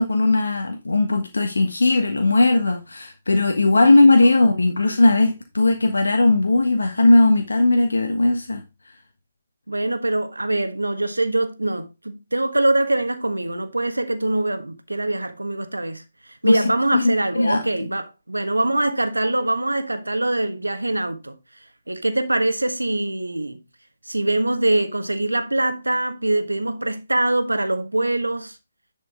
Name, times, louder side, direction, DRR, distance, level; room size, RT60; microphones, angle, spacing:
voice 1, 0.0-8.6 16.4-17.6, left 2 dB, 75° left, 1.4 m, -18 dB
voice 2, 4.4-5.0 9.7-16.0 16.4-21.4 21.9-23.6 24.1-28.6, right 2 dB, 90° right, 1.3 m, -23 dB
10.5 x 5.2 x 3.6 m
figure-of-eight pair, 140°, 0 cm